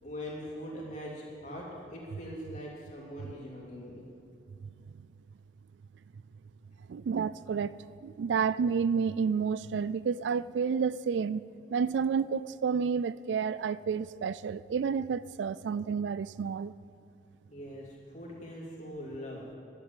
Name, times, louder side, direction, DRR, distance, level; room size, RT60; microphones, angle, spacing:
voice 1, 0.0-4.0 17.5-19.5, equal, 40° left, -4 dB, 2.9 m, -42 dB
voice 2, 6.9-7.7 8.0-11.4 11.7-16.7, right 6 dB, 90° right, 17 dB, 0.3 m, -30 dB
11.0 x 8.2 x 9.2 m, 2.4 s
head